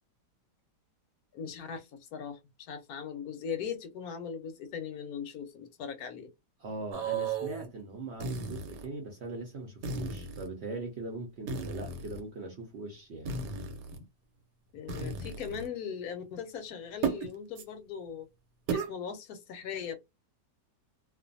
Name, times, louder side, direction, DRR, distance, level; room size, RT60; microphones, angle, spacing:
voice 1, 1.3-2.4 2.7-6.3 14.7-18.3 18.7-20.0, left 7 dB, 70° left, 1.0 m, -39 dB
voice 2, 6.6-13.3, right 2 dB, 55° right, 0.8 m, -40 dB
sound 1, 6.9-7.7 8.2-8.9 9.8-10.5 11.5-12.2 13.3-14.0 14.9-15.7 17.0-17.3 17.6-17.7 18.7-18.9, right 4 dB, 85° right, 1.3 m, -34 dB
2.5 x 2.4 x 2.5 m
omnidirectional pair, 1.8 m